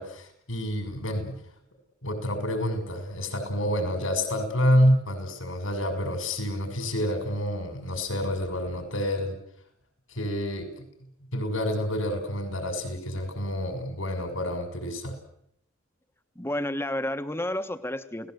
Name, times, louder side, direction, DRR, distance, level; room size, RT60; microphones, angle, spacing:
voice 1, 0.0-1.4 2.0-9.3 10.1-10.8 11.3-15.2, equal, 85° left, 7 dB, 6.5 m, -28 dB
voice 2, 16.4-18.3, left 1 dB, 10° left, 9 dB, 1.3 m, -30 dB
29.0 x 19.0 x 8.0 m, 0.73 s
head